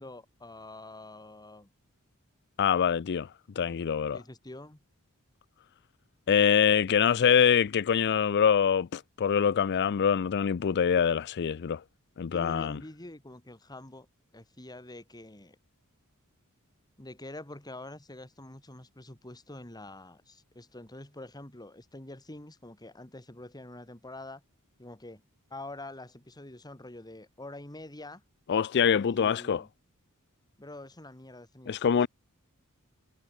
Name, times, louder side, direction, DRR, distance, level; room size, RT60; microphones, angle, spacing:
voice 1, 0.0-1.7 4.1-4.8 12.3-14.1 14.3-15.6 17.0-24.4 24.8-25.2 25.5-28.2 28.9-29.7 30.6-32.0, left 2 dB, 20° left, 2.4 m, -46 dB
voice 2, 2.6-3.3 3.6-4.2 6.3-11.8 12.2-12.8 28.5-29.6 31.7-32.1, left 7 dB, 50° left, 0.4 m, -24 dB
head